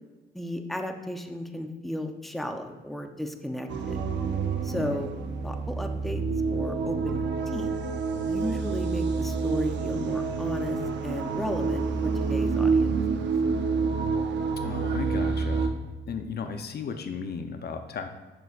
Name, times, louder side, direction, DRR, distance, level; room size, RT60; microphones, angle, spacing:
voice 1, 0.3-4.0 4.6-5.1 5.4-6.2 6.5-7.7 8.2-12.9, equal, ahead, 5 dB, 0.7 m, -34 dB
sound 1, 3.7-15.7, right 4 dB, 65° right, 0.8 m, -28 dB
voice 2, 14.6-15.7 16.1-18.1, left 5 dB, 55° left, 7 dB, 0.8 m, -35 dB
10.5 x 6.9 x 2.5 m, 1.2 s
cardioid pair, 90°, 20 cm